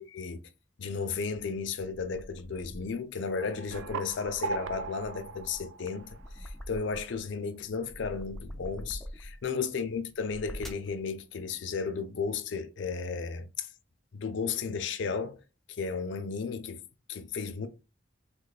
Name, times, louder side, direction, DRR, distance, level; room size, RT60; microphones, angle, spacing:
voice 1, 0.1-0.4 0.8-13.7 14.1-15.4 15.8-17.7, left 5 dB, 65° left, 0.4 m, -34 dB
sound 1, 2.0-3.0 3.5-7.3 7.6-9.5 10.1-11.0, equal, ahead, 0.3 m, -45 dB
sound 2, 3.4-6.7, right 4 dB, 75° right, 0.4 m, -39 dB
3.0 x 2.2 x 3.9 m
head